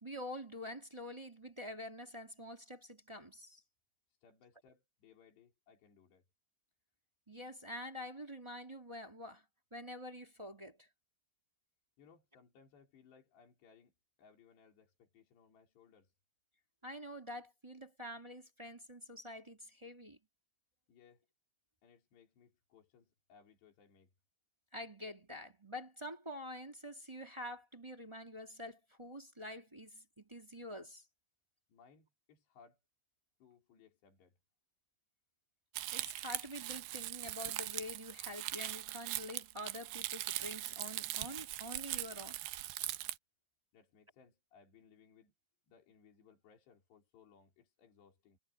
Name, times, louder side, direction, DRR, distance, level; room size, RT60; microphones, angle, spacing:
voice 1, 0.0-3.6 7.3-9.4 9.7-10.9 16.8-20.2 24.7-31.0 35.9-42.4, left 1 dB, 10° right, 1.3 m, -47 dB
voice 2, 4.1-6.3 12.0-13.9 14.2-16.1 20.9-21.3 21.8-24.1 31.7-32.8 33.4-34.4 43.7-45.3 45.7-48.4, left 6 dB, 80° left, 6.2 m, -65 dB
Crumpling crinkling, 35.7-43.2, right 16 dB, 80° right, 2.6 m, -41 dB
omnidirectional pair, 4.8 m